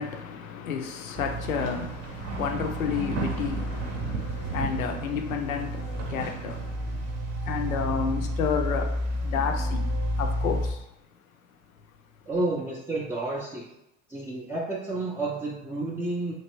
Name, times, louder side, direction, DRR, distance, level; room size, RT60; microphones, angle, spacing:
voice 1, 0.0-7.1 7.4-8.9 9.2-9.9 10.2-10.8, left 6 dB, 85° left, 0.5 m, -31 dB
sound 1, 1.1-10.7, right 1 dB, 40° right, 0.6 m, -31 dB
voice 2, 12.3-13.7 14.1-16.3, right 2 dB, 5° right, 0.3 m, -30 dB
3.0 x 2.5 x 3.0 m
hypercardioid pair, 75°, 40 cm